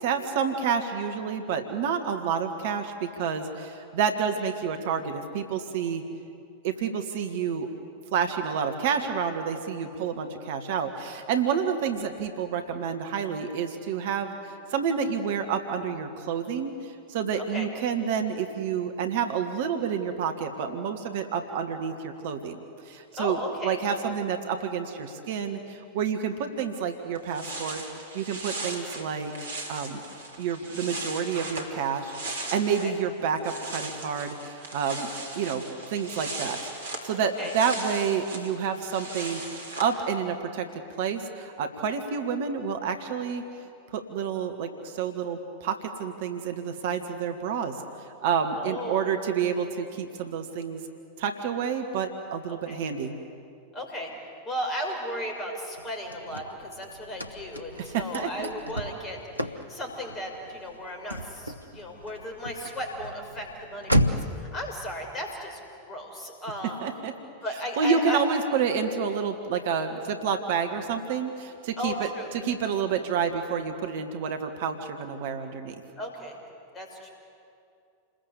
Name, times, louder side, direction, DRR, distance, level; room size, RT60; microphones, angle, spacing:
voice 1, 0.0-6.0 6.6-7.7 8.1-14.4 14.7-23.4 23.6-27.8 28.1-29.3 29.7-30.0 30.4-35.1 35.4-35.6 35.9-36.6 37.0-43.4 43.9-47.8 48.2-50.8 51.2-53.1 57.8-58.5 66.8-67.1 67.8-75.8, right 6 dB, 55° right, 6 dB, 1.7 m, -29 dB
voice 2, 17.4-17.7 23.2-23.8 32.8-32.9 37.2-37.5 48.6-49.1 52.5-52.8 53.7-54.1 54.4-66.8 67.4-68.2 71.8-72.3 76.0-76.4 76.7-77.1, equal, 25° left, 1 dB, 6.2 m, -35 dB
sound 1, 27.1-33.0 33.3-39.9, right 2 dB, 70° right, 3.4 m, -38 dB
Car / Slam, 55.8-64.5, equal, 90° right, 1.2 m, -33 dB
29.0 x 21.0 x 8.4 m, 2.6 s
figure-of-eight pair, 90°, 0 cm